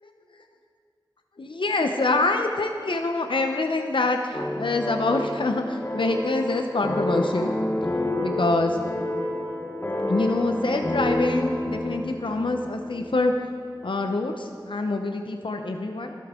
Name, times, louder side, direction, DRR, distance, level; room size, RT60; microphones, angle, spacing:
voice 1, 0.0-0.4 1.4-7.5 8.2-8.8 10.1-13.3 13.8-16.1, left 2 dB, 80° left, 4 dB, 0.7 m, -25 dB
sound 1, 4.3-13.4, left 1 dB, 25° left, 0.9 m, -29 dB
24.5 x 8.4 x 3.7 m, 2.3 s
wide cardioid pair, 50°, 8 cm